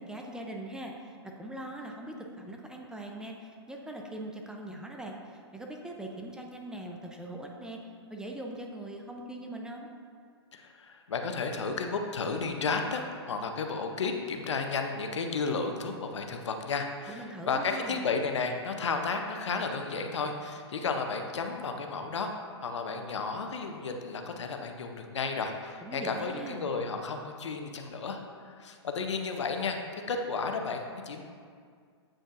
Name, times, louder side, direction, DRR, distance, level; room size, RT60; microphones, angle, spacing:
voice 1, 0.1-7.8 8.1-9.9 17.1-18.0 25.8-26.6, right 1 dB, 5° right, 0 dB, 0.5 m, -41 dB
voice 2, 10.5-22.3 22.6-31.2, left 4 dB, 80° left, 4 dB, 0.7 m, -33 dB
8.5 x 5.1 x 2.5 m, 2.1 s
hypercardioid pair, 120°, 15 cm